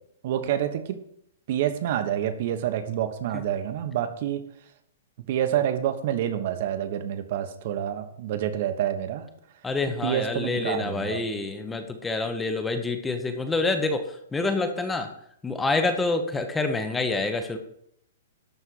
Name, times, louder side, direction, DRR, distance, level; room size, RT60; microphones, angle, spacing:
voice 1, 0.2-1.0 1.5-4.4 5.3-9.3 10.0-11.2, right 10 dB, 40° right, 9 dB, 1.2 m, -27 dB
voice 2, 9.6-15.1 15.4-17.6, left 3 dB, 5° left, 7 dB, 0.9 m, -27 dB
12.5 x 4.4 x 7.9 m, 0.72 s
hypercardioid pair, 170°, 0 cm